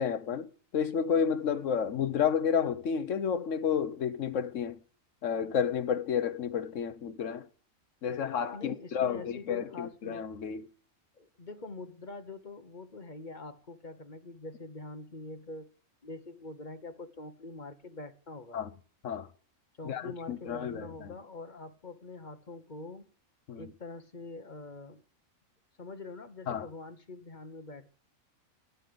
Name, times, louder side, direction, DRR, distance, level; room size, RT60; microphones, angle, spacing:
voice 1, 0.0-4.8 5.2-7.5 8.0-10.7 18.5-18.7 19.0-19.3 19.8-21.1 23.5-23.7 26.5-26.7, left 7 dB, 65° left, 1.3 m, -31 dB
voice 2, 8.5-10.3 11.1-15.7 16.0-18.6 19.8-23.1 23.5-25.0 25.8-27.9, left 3 dB, 35° left, 1.2 m, -44 dB
14.0 x 9.6 x 6.9 m
omnidirectional pair, 1.4 m